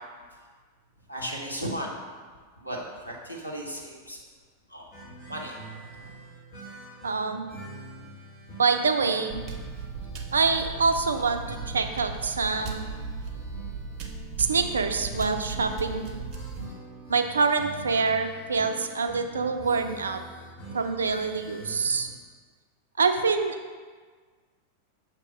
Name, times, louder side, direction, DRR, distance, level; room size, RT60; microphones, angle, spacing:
voice 1, 1.1-1.9 2.6-4.2 4.7-4.9 5.3-5.5 6.0-6.1, equal, 85° left, -2 dB, 1.0 m, -35 dB
sound 1, 4.9-22.1, right 2 dB, 40° left, 1.3 m, -45 dB
voice 2, 7.0-7.5 8.6-9.4 10.3-12.9 14.4-16.1 17.1-20.2 20.7-22.1 23.0-23.6, right 4 dB, 70° right, 7 dB, 0.4 m, -25 dB
sound 2, 9.3-16.7, right 4 dB, 40° right, 0.7 m, -37 dB
6.9 x 2.9 x 4.9 m, 1.5 s
figure-of-eight pair, 90°, 0 cm